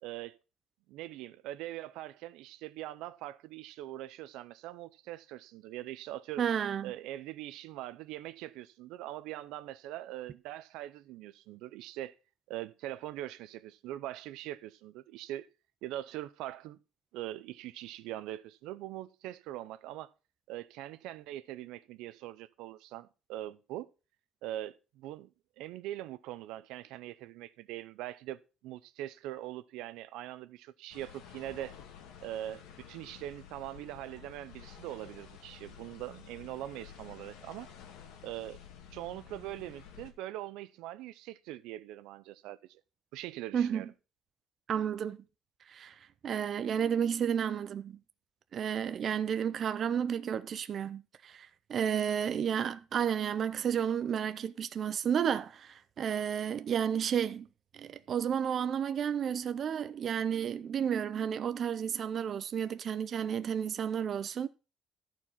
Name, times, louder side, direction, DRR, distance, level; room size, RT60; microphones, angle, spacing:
voice 1, 0.0-0.4 0.9-6.4 6.8-12.2 12.5-15.5 15.8-16.8 17.1-20.1 20.5-23.9 24.4-25.3 25.6-31.8 32.2-37.7 38.2-38.6 38.9-42.8 43.1-43.9, right 14 dB, 85° right, 0.6 m, -42 dB
voice 2, 6.4-6.9 43.5-43.8 44.7-45.2 45.7-46.0 46.2-48.0 48.5-57.5 57.7-64.5, right 8 dB, 35° right, 0.5 m, -32 dB
sound 1, 30.9-40.1, left 8 dB, 85° left, 1.7 m, -52 dB
13.5 x 4.6 x 5.6 m
cardioid pair, 160°, 0 cm